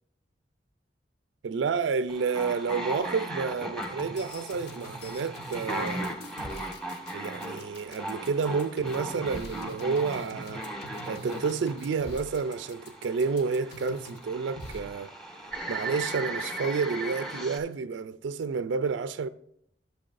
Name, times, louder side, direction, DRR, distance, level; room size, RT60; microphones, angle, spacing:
voice 1, 1.4-6.2 7.1-10.7 11.0-15.1 15.7-19.3, right 5 dB, 85° right, 0.4 m, -30 dB
sound 1, 2.1-17.6, right 1 dB, 5° left, 0.9 m, -38 dB
sound 2, 3.8-14.2 14.6-14.8, left 1 dB, 65° left, 1.4 m, -44 dB
11.5 x 7.1 x 2.5 m
head